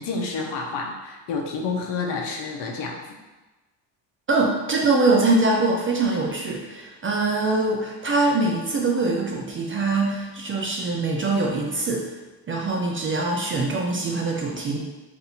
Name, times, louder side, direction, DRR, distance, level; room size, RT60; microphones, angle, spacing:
voice 1, 0.0-3.1, left 4 dB, 70° left, 1 dB, 0.8 m, -29 dB
voice 2, 4.3-12.1 12.5-14.8, right 3 dB, 30° right, -1 dB, 0.4 m, -23 dB
2.6 x 2.6 x 4.1 m, 1.2 s
cardioid pair, 100°, 45 cm